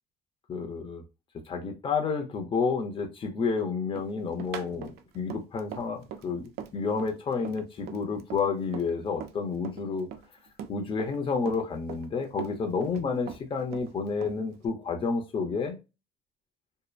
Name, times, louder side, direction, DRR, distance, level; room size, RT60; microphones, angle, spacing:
voice 1, 0.5-1.0 1.5-10.1 10.7-15.8, left 5 dB, 30° left, 0.6 m, -30 dB
Run, 4.0-9.4 9.6-11.2 11.5-13.0 13.3-14.7, right 9 dB, 70° right, 0.4 m, -41 dB
2.8 x 2.1 x 2.3 m
cardioid pair, 110°, 17 cm